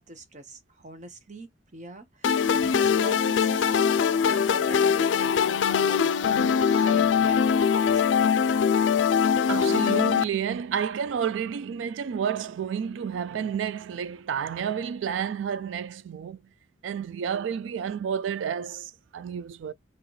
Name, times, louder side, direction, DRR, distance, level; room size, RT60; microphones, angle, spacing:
voice 1, 0.0-8.0, right 2 dB, 40° right, 0.9 m, -43 dB
sound 1, 2.2-10.2, left 7 dB, 80° left, 0.4 m, -22 dB
voice 2, 9.5-16.4 16.8-19.7, right 7 dB, 85° right, 0.3 m, -30 dB
3.8 x 3.0 x 3.1 m
head